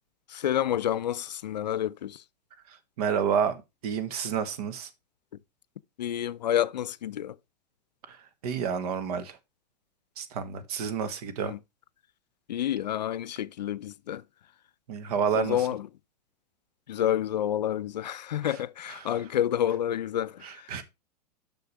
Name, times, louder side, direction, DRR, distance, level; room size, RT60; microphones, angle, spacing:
voice 1, 0.3-2.2 6.0-7.3 11.4-11.6 12.5-14.2 15.3-15.9 16.9-20.3, left 11 dB, 80° left, 0.5 m, -29 dB
voice 2, 3.0-3.6 3.8-4.9 8.1-8.2 8.4-9.4 10.2-11.5 14.9-15.7 18.4-18.6 18.9-19.3 20.4-20.8, right 7 dB, 60° right, 1.5 m, -30 dB
6.8 x 6.1 x 4.8 m
hypercardioid pair, 100°, 21 cm